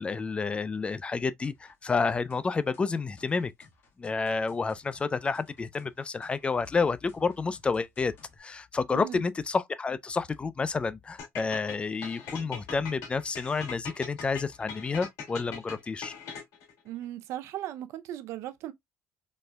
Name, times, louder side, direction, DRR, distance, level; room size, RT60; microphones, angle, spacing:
voice 1, 0.0-3.5 4.0-8.1 8.4-16.1, left 4 dB, 20° left, 0.4 m, -30 dB
sound 1, 1.4-8.4, left 4 dB, 50° left, 1.6 m, -59 dB
voice 2, 8.9-9.2 16.8-18.7, right 13 dB, 75° right, 0.6 m, -37 dB
sound 2, 11.2-16.7, left 6 dB, 85° left, 2.0 m, -41 dB
4.2 x 3.1 x 2.2 m
cardioid pair, 120°, 5 cm